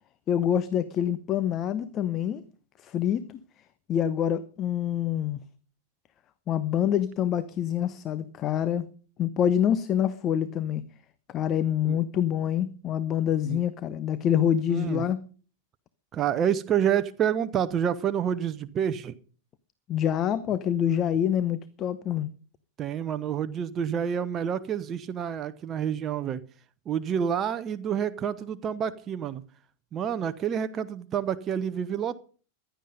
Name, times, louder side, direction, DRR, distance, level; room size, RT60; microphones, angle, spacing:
voice 1, 0.3-2.4 2.8-3.2 3.9-5.4 6.5-8.9 9.2-10.8 11.3-15.2 19.9-22.3, left 9 dB, 30° left, 0.9 m, -26 dB
voice 2, 14.7-15.0 16.1-19.1 22.8-26.4 26.9-29.4 29.9-32.2, right 8 dB, 25° right, 0.8 m, -28 dB
15.5 x 11.5 x 5.3 m
figure-of-eight pair, 90°, 0 cm